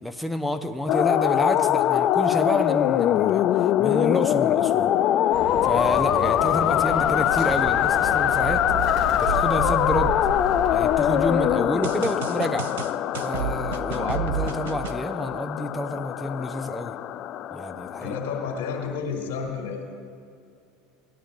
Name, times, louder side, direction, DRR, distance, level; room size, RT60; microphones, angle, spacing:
voice 1, 0.0-3.4 3.8-4.9 5.6-8.6 9.2-10.2 10.7-12.7 13.2-17.0 17.5-18.2, left 1 dB, ahead, 6 dB, 0.7 m, -29 dB
sound 1, 0.9-19.0, left 12 dB, 50° left, 0.3 m, -23 dB
Bird, 5.3-11.5, right 3 dB, 50° right, 2.0 m, -34 dB
voice 2, 6.5-6.8 13.9-14.2 18.0-20.0, left 6 dB, 75° left, 1 dB, 1.9 m, -32 dB
sound 2, 9.3-11.1 11.8-15.0, right 8 dB, 75° right, 0.5 m, -32 dB
17.5 x 10.0 x 2.5 m, 2.4 s
hypercardioid pair, 75°, 0 cm